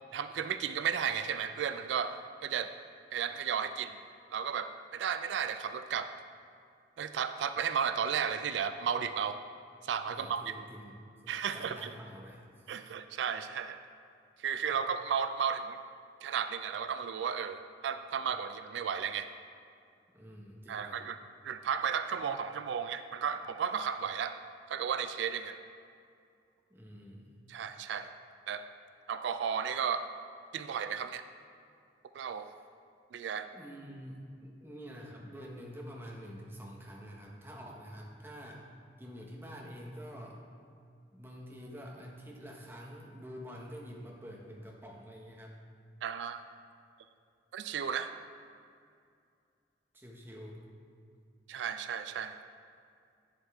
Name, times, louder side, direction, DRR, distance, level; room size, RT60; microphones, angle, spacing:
voice 1, 0.1-2.7 3.1-4.0 4.3-6.1 7.0-9.4 9.8-10.4 11.3-11.9 12.7-13.8 14.4-15.8 16.2-19.3 20.7-21.2 21.4-24.4 24.7-25.6 27.5-28.1 28.5-28.6 29.1-30.1 30.5-31.2 32.1-32.5 33.1-33.5 46.0-46.4 47.5-48.1 51.5-52.4, right 7 dB, 85° right, 10 dB, 0.3 m, -34 dB
voice 2, 10.1-12.8 20.1-21.0 26.7-27.4 32.3-32.6 33.5-38.7 39.0-40.4 41.1-45.6 49.9-50.7, equal, 10° right, -1 dB, 0.9 m, -47 dB
8.0 x 7.6 x 3.5 m, 2.4 s
head